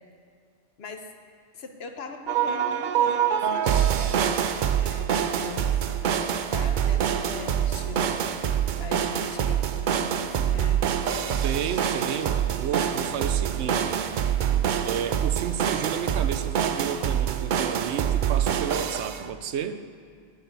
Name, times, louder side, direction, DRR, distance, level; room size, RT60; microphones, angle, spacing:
voice 1, 0.8-1.1 1.5-8.2 8.7-11.0, left 5 dB, 65° left, 5 dB, 1.1 m, -41 dB
sound 1, 2.3-19.3, right 9 dB, 55° right, 0.6 m, -25 dB
voice 2, 11.4-14.0 14.8-19.8, right 8 dB, 80° right, 11 dB, 0.9 m, -32 dB
9.3 x 7.6 x 8.7 m, 2.1 s
omnidirectional pair, 1.2 m